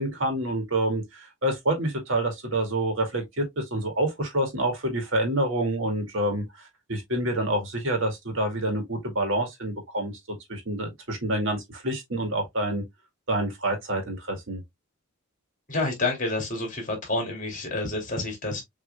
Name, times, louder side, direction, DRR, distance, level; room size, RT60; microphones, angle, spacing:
voice 1, 0.0-10.1 10.5-12.8 13.3-14.6, right 1 dB, 65° right, 2.1 m, -27 dB
voice 2, 15.7-18.6, left 2 dB, 35° left, 2.5 m, -28 dB
6.8 x 3.6 x 2.2 m
head